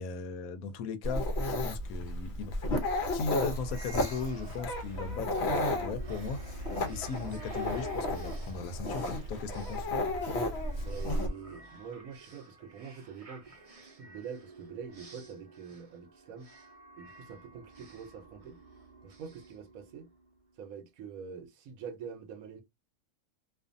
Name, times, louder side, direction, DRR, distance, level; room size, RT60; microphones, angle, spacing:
voice 1, 0.0-2.5 3.1-9.9, left 5 dB, 80° left, 1.0 m, -38 dB
Dog, 1.0-11.3, left 1 dB, 60° left, 0.8 m, -33 dB
sound 1, 2.7-20.4, right 4 dB, 40° right, 0.5 m, -52 dB
voice 2, 10.8-13.5 13.8-16.5 17.0-18.6 19.0-20.1 20.6-22.6, right 6 dB, 75° right, 1.1 m, -45 dB
2.5 x 2.5 x 2.5 m
omnidirectional pair, 1.5 m